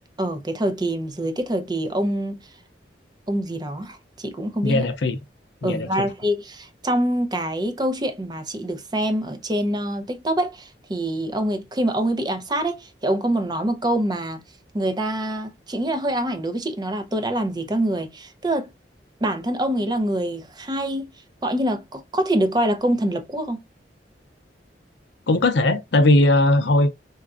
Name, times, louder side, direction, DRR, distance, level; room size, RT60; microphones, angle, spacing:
voice 1, 0.2-2.4 3.3-4.9 5.6-14.4 14.7-18.7 19.2-21.1 21.4-23.6, right 1 dB, 25° right, 0.6 m, -25 dB
voice 2, 4.6-5.2 5.6-6.1 25.3-26.9, left 2 dB, 65° left, 0.5 m, -19 dB
4.2 x 2.4 x 2.4 m
head